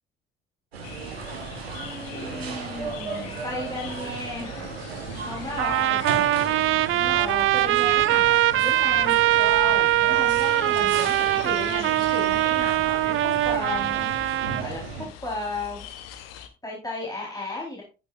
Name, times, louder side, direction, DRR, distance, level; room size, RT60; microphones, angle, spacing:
sound 1, 0.7-15.1, right 4 dB, 85° right, 1.2 m, -36 dB
sound 2, 0.8-16.5, left 9 dB, 75° left, 1.0 m, -43 dB
voice 1, 1.7-4.7 5.2-6.0 6.8-14.1 14.6-15.8 16.6-17.8, left 2 dB, 10° left, -4 dB, 4.2 m, -34 dB
Trumpet, 5.6-14.6, right 15 dB, 45° right, 0.4 m, -22 dB
10.5 x 9.3 x 2.5 m, 0.31 s
figure-of-eight pair, 45°, 30 cm